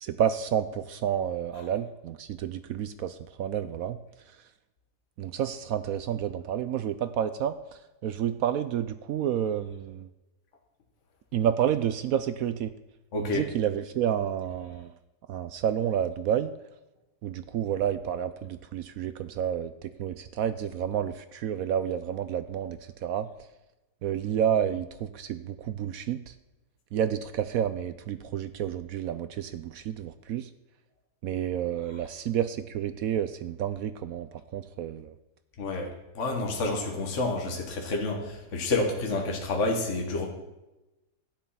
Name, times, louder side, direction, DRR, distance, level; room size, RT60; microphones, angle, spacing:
voice 1, 0.0-4.0 5.2-10.1 11.3-12.7 13.2-14.9 15.3-16.5 17.2-23.3 24.0-26.3 26.9-30.5 31.2-35.1, right 9 dB, 70° right, 12 dB, 0.9 m, -30 dB
voice 2, 13.1-13.4 35.6-40.3, left 2 dB, 45° left, 1 dB, 1.7 m, -29 dB
12.0 x 9.4 x 5.6 m, 0.99 s
omnidirectional pair, 1.8 m